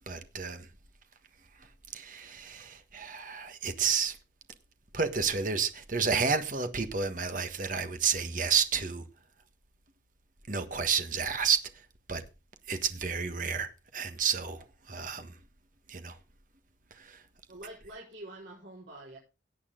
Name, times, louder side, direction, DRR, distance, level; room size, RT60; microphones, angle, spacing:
voice 1, 0.1-0.7 1.9-4.1 4.9-9.0 10.5-11.6 12.1-12.2 12.7-15.3 15.9-16.2 17.0-17.2, right 6 dB, 45° right, 1.5 m, -31 dB
voice 2, 17.5-19.2, right 1 dB, 85° right, 5.0 m, -46 dB
17.5 x 8.5 x 3.8 m
head